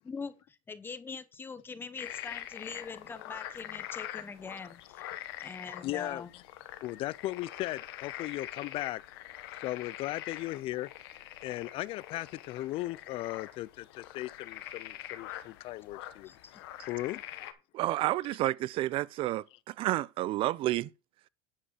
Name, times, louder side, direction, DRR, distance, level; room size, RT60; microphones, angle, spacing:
voice 1, 0.0-5.1 5.4-6.3 16.2-16.7, left 5 dB, 20° left, 1.0 m, -43 dB
sound 1, 2.0-17.5, left 13 dB, 85° left, 1.2 m, -44 dB
voice 2, 5.8-6.3 6.8-9.0 9.6-10.9 11.4-16.3 16.9-17.2, left 17 dB, 50° left, 0.4 m, -37 dB
voice 3, 17.7-20.9, right 15 dB, 45° right, 0.5 m, -30 dB
9.8 x 5.2 x 5.7 m
supercardioid pair, 130°, 12 cm